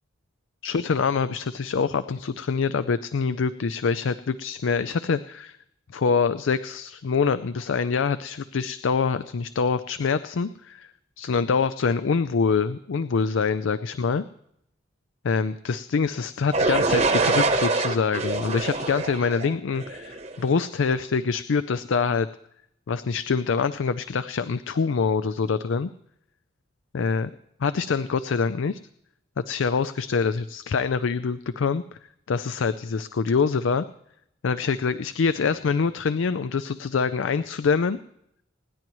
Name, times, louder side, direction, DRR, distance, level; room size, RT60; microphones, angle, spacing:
voice 1, 0.6-5.6 5.9-10.9 11.2-14.2 15.2-22.3 22.9-25.9 26.9-27.3 27.6-28.8 29.4-31.8 32.3-33.8 34.4-38.0, left 5 dB, 80° left, 14 dB, 0.4 m, -25 dB
sound 1, 16.5-20.4, right 3 dB, 35° right, 1.0 m, -24 dB
26.5 x 10.5 x 3.1 m, 0.77 s
head